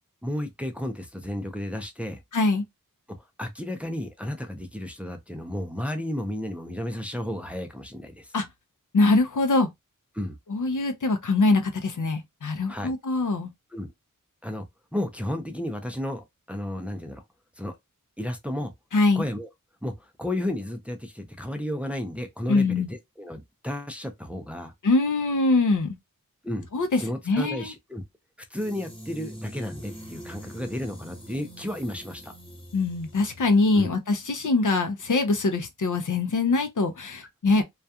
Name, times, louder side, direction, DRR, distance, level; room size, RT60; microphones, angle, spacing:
voice 1, 0.2-2.2 3.4-8.3 10.1-10.4 12.7-12.9 13.7-13.9 14.4-14.7 14.9-17.2 17.6-17.8 18.2-18.7 19.2-19.5 19.8-24.7 26.4-26.7 27.0-28.0 28.5-32.3 33.7-33.9, left 1 dB, 5° right, 0.5 m, -33 dB
voice 2, 2.3-2.6 8.3-8.5 8.9-9.7 10.5-13.5 18.9-19.2 22.5-22.9 24.8-26.0 26.7-27.0 27.3-27.7 32.7-37.6, left 3 dB, 65° left, 0.6 m, -23 dB
sound 1, 28.5-33.8, equal, 15° left, 1.0 m, -43 dB
2.3 x 2.2 x 2.7 m
wide cardioid pair, 50°, 33 cm